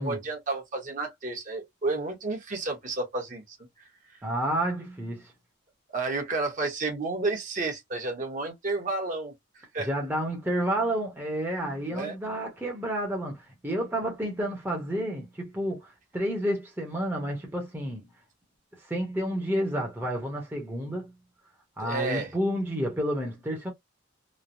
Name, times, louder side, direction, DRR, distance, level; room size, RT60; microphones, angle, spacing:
voice 1, 0.0-4.2 5.9-9.9 11.9-12.1 21.8-22.3, right 3 dB, 40° right, 0.9 m, -31 dB
voice 2, 4.2-5.3 9.8-18.1 18.8-21.1 21.8-23.7, equal, 10° right, 0.7 m, -30 dB
3.1 x 2.0 x 2.5 m
head